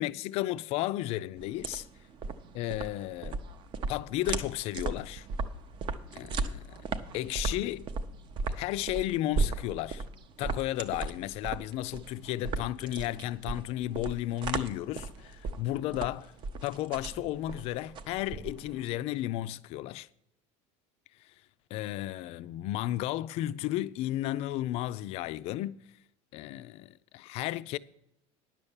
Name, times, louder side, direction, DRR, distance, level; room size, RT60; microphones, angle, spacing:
voice 1, 0.0-1.9 2.5-3.4 3.9-5.3 6.1-6.8 7.1-7.9 8.5-10.0 10.4-16.3 16.6-20.1 21.7-25.8 26.3-27.8, left 15 dB, 40° left, 0.4 m, -33 dB
sound 1, 1.4-18.8, right 4 dB, 30° right, 0.6 m, -36 dB
10.5 x 6.6 x 7.1 m
cardioid pair, 175°, 15 cm